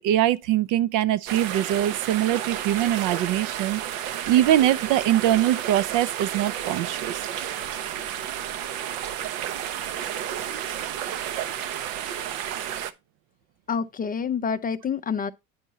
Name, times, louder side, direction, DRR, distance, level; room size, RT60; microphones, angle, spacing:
voice 1, 0.0-3.8 4.3-7.2, right 12 dB, 50° right, 0.5 m, -22 dB
sound 1, 1.3-12.9, right 10 dB, 70° right, 0.8 m, -31 dB
voice 2, 13.7-15.3, left 6 dB, 20° left, 0.5 m, -27 dB
9.4 x 5.4 x 3.8 m
hypercardioid pair, 80°, 40 cm